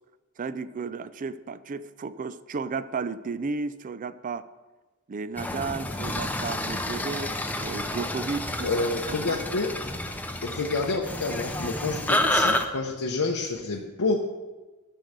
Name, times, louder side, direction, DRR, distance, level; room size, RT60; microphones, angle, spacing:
voice 1, 0.4-4.5 5.1-8.7 9.1-9.4, right 4 dB, 40° right, 15 dB, 0.4 m, -33 dB
sound 1, 5.4-12.6, left 1 dB, 10° left, 0.6 m, -29 dB
voice 2, 8.6-9.9 10.4-14.2, left 3 dB, 85° left, 0 dB, 0.9 m, -28 dB
13.5 x 4.6 x 6.6 m, 1.2 s
head